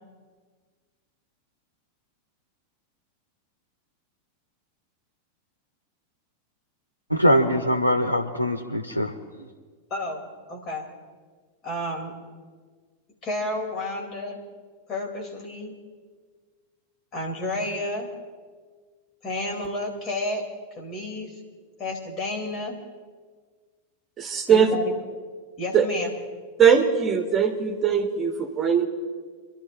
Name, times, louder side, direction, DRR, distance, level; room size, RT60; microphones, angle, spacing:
voice 1, 7.1-9.5, equal, 90° right, 5 dB, 0.7 m, -23 dB
voice 2, 9.9-10.9 11.6-12.2 13.2-14.4 14.9-15.7 17.1-18.1 19.2-20.5 20.8-21.3 21.8-22.8 24.5-25.0 25.6-26.1, left 1 dB, 30° left, 1 dB, 2.9 m, -31 dB
voice 3, 24.2-24.7 25.7-25.9 26.6-28.9, right 7 dB, 20° right, 3 dB, 1.5 m, -20 dB
29.0 x 12.0 x 2.5 m, 1.5 s
figure-of-eight pair, 90°, 0 cm